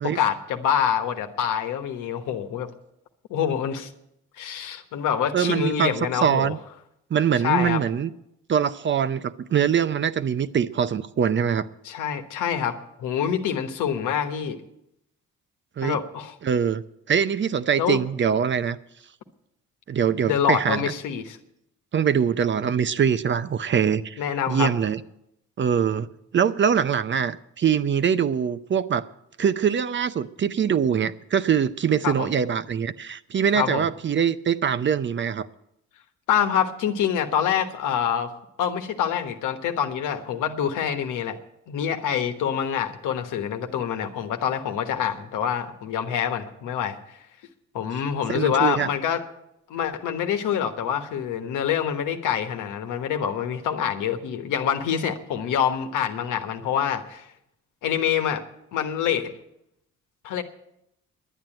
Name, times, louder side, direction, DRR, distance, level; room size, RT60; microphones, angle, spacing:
voice 1, 0.0-2.7 3.3-3.9 4.4-6.5 7.4-7.8 11.8-14.6 15.8-16.3 17.8-18.0 20.2-21.4 24.2-24.7 32.0-32.3 33.5-33.9 36.3-38.3 38.6-41.4 41.7-47.0 47.7-49.2 49.7-57.3 57.8-58.4 58.7-59.3 60.2-60.4, left 8 dB, 90° left, 6 dB, 1.3 m, -26 dB
voice 2, 5.3-5.9 6.2-6.6 7.1-8.1 8.5-11.7 15.8-16.0 16.4-18.8 19.9-20.9 21.9-24.2 24.5-25.0 25.6-29.1 29.4-35.5 48.3-48.9, right 7 dB, 40° right, 14 dB, 0.6 m, -23 dB
11.0 x 9.1 x 8.9 m, 0.80 s
cardioid pair, 90°, 30 cm